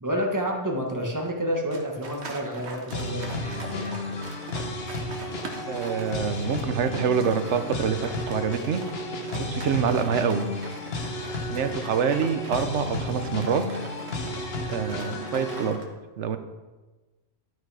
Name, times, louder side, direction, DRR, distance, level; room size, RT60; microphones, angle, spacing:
voice 1, 0.0-4.0, equal, 15° right, 1 dB, 1.4 m, -29 dB
sound 1, 1.7-15.8, right 2 dB, 70° right, 1.5 m, -42 dB
sound 2, 2.9-15.7, left 2 dB, 60° left, 1.3 m, -33 dB
voice 2, 5.7-8.8 9.3-10.5 11.5-13.6 14.7-15.8 16.2-16.4, right 7 dB, 90° right, 10 dB, 1.1 m, -26 dB
12.0 x 6.3 x 4.8 m, 1.2 s
omnidirectional pair, 1.2 m